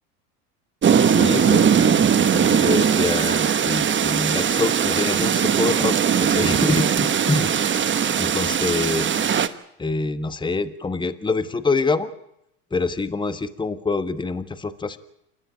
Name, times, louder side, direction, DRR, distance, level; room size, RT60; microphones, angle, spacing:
sound 1, 0.8-9.5, right 8 dB, 25° right, 1.2 m, -20 dB
voice 1, 1.0-7.5 8.2-9.1 9.8-12.1 12.7-15.0, left 3 dB, 10° left, 12 dB, 1.3 m, -25 dB
28.0 x 13.0 x 9.2 m, 0.78 s
hypercardioid pair, 95°, 46 cm